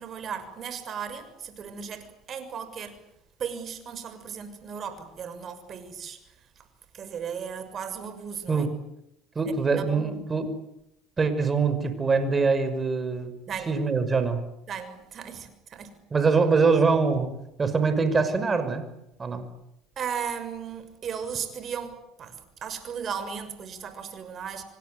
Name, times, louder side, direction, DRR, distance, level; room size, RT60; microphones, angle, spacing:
voice 1, 0.0-3.0 3.4-6.7 6.9-8.7 9.5-10.2 13.5-13.7 14.7-16.0 20.0-24.6, right 7 dB, 45° right, 6.7 m, -36 dB
voice 2, 9.4-10.5 11.2-13.3 13.7-14.4 16.1-17.3 17.6-18.8 19.2-19.5, right 4 dB, 25° right, 5.9 m, -23 dB
27.0 x 25.0 x 8.1 m
hypercardioid pair, 80°, 0 cm